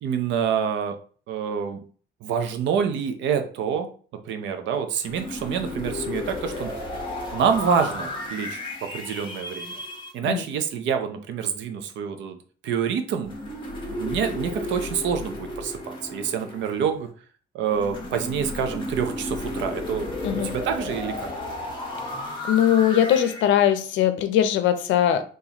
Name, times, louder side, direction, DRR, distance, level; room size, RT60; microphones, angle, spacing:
voice 1, 0.0-1.0 1.3-1.8 2.2-3.9 4.2-6.7 7.3-9.8 10.1-12.4 12.6-13.3 13.9-17.1 17.5-21.3, right 7 dB, 75° right, 7 dB, 0.6 m, -27 dB
sound 1, 5.0-10.1 13.2-17.0 17.7-23.5, left 2 dB, 25° left, 1.0 m, -33 dB
voice 2, 22.5-25.2, left 10 dB, 85° left, 10 dB, 0.5 m, -20 dB
4.0 x 2.6 x 2.9 m, 0.43 s
cardioid pair, 155°, 19 cm